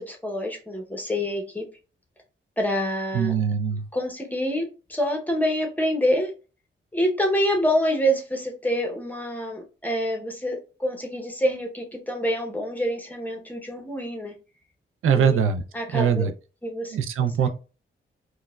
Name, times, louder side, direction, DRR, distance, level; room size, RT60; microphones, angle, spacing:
voice 1, 0.0-1.6 2.6-3.4 3.9-6.3 6.9-14.3 15.1-15.4 15.7-16.2 16.6-17.0 17.4-17.5, equal, 10° left, 0.7 m, -26 dB
voice 2, 3.1-3.8 15.0-15.6 15.9-16.3 16.9-17.5, right 7 dB, 85° right, 0.4 m, -22 dB
4.4 x 2.1 x 2.2 m
wide cardioid pair, 110°, 21 cm